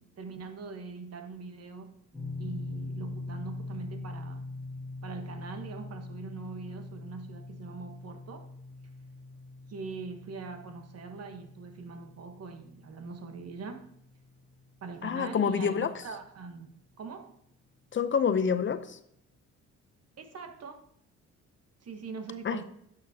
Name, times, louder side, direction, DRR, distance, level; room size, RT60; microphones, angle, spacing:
voice 1, 0.0-1.9 2.4-4.5 5.0-8.5 9.7-13.9 14.8-17.4 20.2-20.9 21.8-22.6, right 4 dB, 55° right, 1.2 m, -42 dB
sound 1, 2.1-15.0, left 2 dB, 10° left, 2.5 m, -43 dB
voice 2, 15.0-15.9 17.9-19.0 22.4-22.6, left 6 dB, 40° left, 0.6 m, -27 dB
10.5 x 6.6 x 2.8 m
cardioid pair, 90°, 30 cm